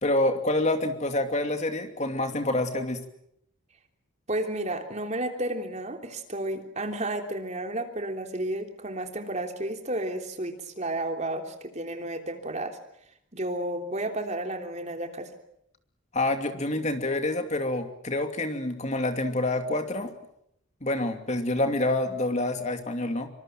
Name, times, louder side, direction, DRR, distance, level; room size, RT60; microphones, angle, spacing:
voice 1, 0.0-3.0 16.1-20.1 20.8-23.3, left 2 dB, 35° left, 6 dB, 2.7 m, -27 dB
voice 2, 4.3-12.8 13.3-15.3, right 1 dB, 35° right, 4 dB, 3.4 m, -32 dB
26.5 x 25.5 x 7.8 m, 0.76 s
head